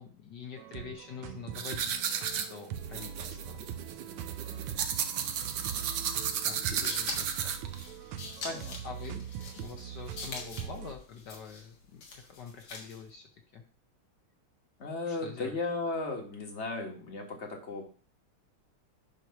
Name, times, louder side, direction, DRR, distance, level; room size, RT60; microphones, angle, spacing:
voice 1, 0.0-3.6 6.4-7.5 8.8-9.3 9.5-13.2 13.5-13.6 15.1-15.6, left 6 dB, 60° left, 3 dB, 1.3 m, -46 dB
sound 1, 0.6-11.0, right 10 dB, 85° right, 1.5 m, -42 dB
sound 2, 1.6-7.8, right 8 dB, 65° right, 1.2 m, -33 dB
sound 3, 6.5-13.1, left 3 dB, 90° left, 2.6 m, -44 dB
voice 2, 6.5-7.1 8.4-8.8 14.8-17.9, left 3 dB, 35° left, 2 dB, 1.6 m, -36 dB
9.3 x 3.1 x 5.8 m, 0.40 s
omnidirectional pair, 2.3 m